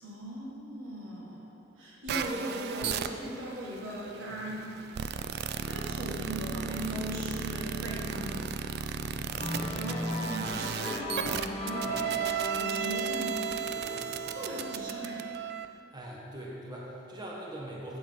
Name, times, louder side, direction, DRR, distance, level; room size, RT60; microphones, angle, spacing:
voice 1, 0.0-5.4 5.7-8.6 9.7-13.4 14.3-15.3, right 1 dB, 90° right, -4 dB, 1.8 m, -39 dB
sound 1, 2.1-15.7, right 8 dB, 55° right, 0.3 m, -35 dB
voice 2, 9.0-9.3 11.9-12.2 13.9-14.2 15.9-18.0, right 1 dB, 20° right, -4 dB, 1.1 m, -43 dB
sound 2, 9.4-14.8, left 1 dB, 30° left, 0.8 m, -36 dB
8.4 x 7.8 x 3.8 m, 2.8 s
head